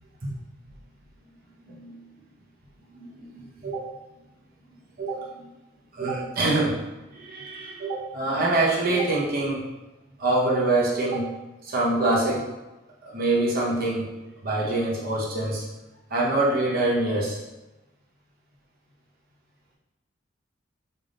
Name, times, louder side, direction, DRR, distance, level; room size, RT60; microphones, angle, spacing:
voice 1, 1.6-2.0 2.9-3.9 5.0-5.5 5.9-6.7 7.1-9.6 10.2-11.3 11.6-12.4 13.1-14.1 14.4-15.6 16.1-17.4, right 2 dB, 50° right, -5 dB, 0.9 m, -25 dB
3.5 x 2.8 x 3.7 m, 1.1 s
head